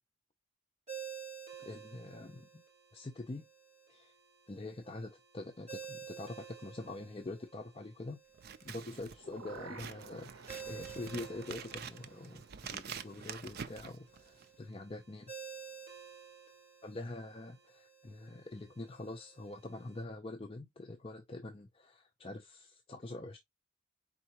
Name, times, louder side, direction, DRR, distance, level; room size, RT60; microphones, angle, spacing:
Ringtone, 0.9-20.0, right 7 dB, 30° right, 3.3 m, -52 dB
voice 1, 1.6-2.6 2.9-3.5 3.9-4.1 4.5-8.2 8.6-15.3 16.8-23.4, left 2 dB, 30° left, 0.4 m, -45 dB
Scissors, 8.3-14.6, right 7 dB, 50° right, 0.4 m, -47 dB
sound 1, 8.7-14.7 15.0-15.1, right 4 dB, 80° right, 0.8 m, -54 dB
4.4 x 3.6 x 2.9 m
head